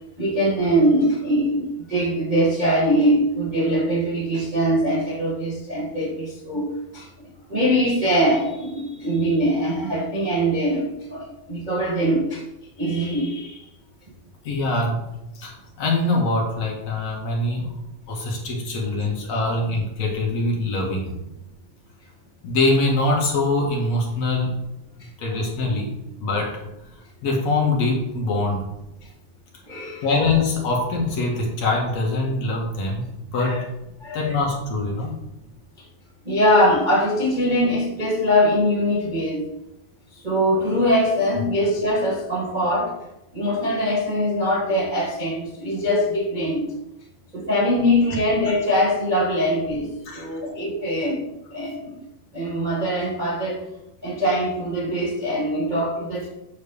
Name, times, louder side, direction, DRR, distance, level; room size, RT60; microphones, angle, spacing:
voice 1, 0.2-7.0 7.5-11.2 11.5-12.4 12.8-13.6 18.9-19.0 29.7-30.1 33.4-33.6 34.0-34.4 36.3-39.5 40.2-42.9 43.3-46.7 47.3-49.9 50.2-51.2 51.5-51.9 52.3-53.6 54.0-56.3, equal, 75° right, -4 dB, 0.4 m, -22 dB
voice 2, 14.4-15.0 15.3-17.7 18.1-21.1 22.4-24.5 25.0-25.9 26.2-26.6 27.2-28.6 30.0-33.7 34.1-35.1 50.1-50.3, left 2 dB, 55° left, -1 dB, 2.7 m, -23 dB
9.2 x 4.3 x 6.9 m, 0.89 s
omnidirectional pair, 4.1 m